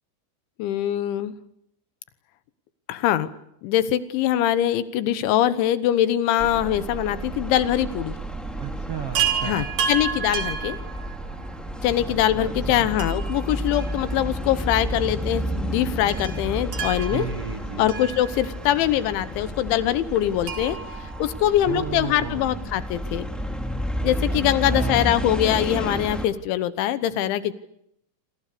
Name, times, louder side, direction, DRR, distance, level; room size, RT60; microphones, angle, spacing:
voice 1, 0.6-1.3 2.9-3.3 3.6-8.2 9.4-10.8 11.8-17.3 17.8-20.8 21.2-23.3 24.0-27.5, left 12 dB, 80° left, 14 dB, 3.4 m, -23 dB
sound 1, 6.4-26.2, equal, ahead, 1.8 m, -31 dB
voice 2, 8.6-9.7 12.0-12.9 17.1-17.9 21.6-22.5 24.3-25.1, right 7 dB, 80° right, 7 dB, 1.3 m, -34 dB
Chime, 9.1-11.6 13.0-14.5 14.8-14.9 16.1-18.8 20.4-22.1 23.6-23.7 23.9-24.0, right 7 dB, 50° right, 3.8 m, -31 dB
27.5 x 25.5 x 6.8 m, 0.74 s
omnidirectional pair, 5.4 m